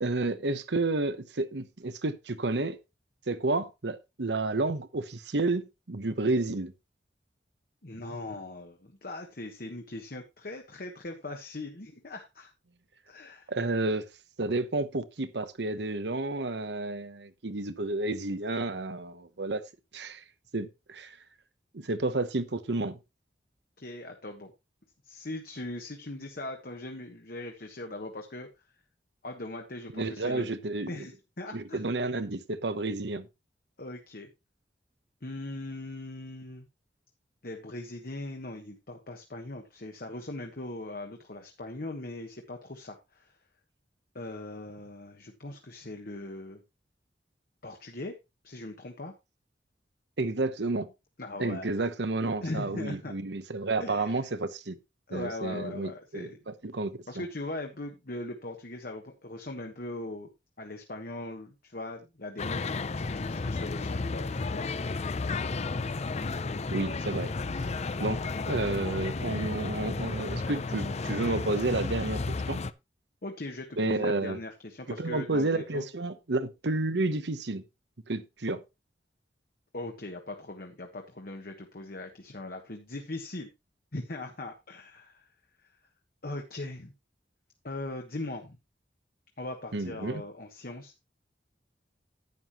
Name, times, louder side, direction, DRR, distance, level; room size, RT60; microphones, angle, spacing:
voice 1, 0.0-2.8 3.3-6.7 13.5-14.0 14.4-19.6 19.9-20.2 20.5-21.2 21.7-23.0 29.9-30.9 31.5-33.3 50.2-50.9 51.4-54.8 55.1-57.2 66.7-67.3 68.0-72.2 72.5-72.6 73.8-74.4 75.0-77.6 78.1-78.6 89.7-90.2, right 2 dB, 75° right, 1.0 m, -31 dB
voice 2, 7.8-12.5 13.1-13.5 23.8-24.5 25.0-28.5 29.2-30.5 30.9-31.8 33.8-34.3 35.2-36.7 37.4-43.4 44.1-46.6 47.6-48.1 48.4-49.1 51.2-51.7 52.4-53.1 53.8-54.1 55.1-56.4 57.1-60.3 60.6-64.7 73.2-75.8 79.7-83.5 83.9-85.3 85.6-85.8 86.2-86.9 87.6-88.6 89.4-90.9, left 2 dB, 55° left, 1.4 m, -40 dB
sound 1, 62.4-72.7, left 3 dB, 40° left, 0.5 m, -32 dB
11.0 x 9.4 x 3.0 m
head